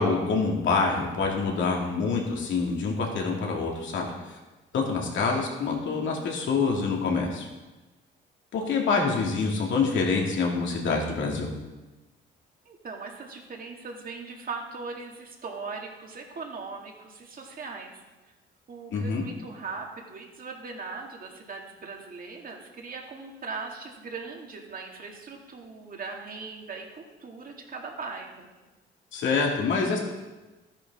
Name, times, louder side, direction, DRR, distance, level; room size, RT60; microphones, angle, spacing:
voice 1, 0.0-4.1 4.7-7.5 8.5-11.5 18.9-19.2 29.1-30.0, left 4 dB, 75° left, 0 dB, 2.4 m, -26 dB
voice 2, 12.7-17.9 18.7-28.5, right 4 dB, 45° right, 1 dB, 2.2 m, -39 dB
13.0 x 10.0 x 3.7 m, 1.1 s
cardioid pair, 90°, 20 cm